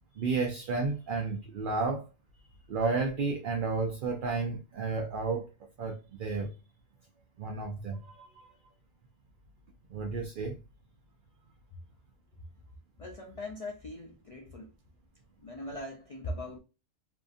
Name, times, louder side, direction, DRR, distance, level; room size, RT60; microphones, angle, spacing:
voice 1, 0.2-2.1 2.7-5.5 5.8-6.5 7.4-8.3 9.9-10.6, right 4 dB, 55° right, 0.7 m, -32 dB
voice 2, 13.0-14.7 15.4-16.6, left 1 dB, 70° left, 0.3 m, -40 dB
2.7 x 2.4 x 2.5 m
omnidirectional pair, 1.2 m